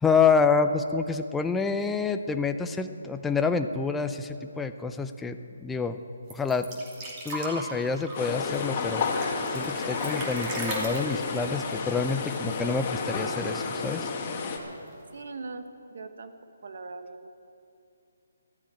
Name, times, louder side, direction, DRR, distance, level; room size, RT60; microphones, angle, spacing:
voice 1, 0.0-6.0 6.3-6.7 7.2-9.0 9.5-14.1, left 5 dB, 5° left, 7 dB, 0.5 m, -27 dB
sound 1, 6.3-12.7 13.0-13.1 13.4-14.1 14.9-15.0, right 1 dB, 25° right, 2.7 m, -37 dB
sound 2, 8.1-14.6, left 4 dB, 30° left, 1.7 m, -31 dB
voice 2, 15.1-16.3 16.6-17.3, right 3 dB, 65° right, 8 dB, 1.2 m, -40 dB
13.0 x 10.0 x 8.9 m, 2.6 s
hypercardioid pair, 160°, 0 cm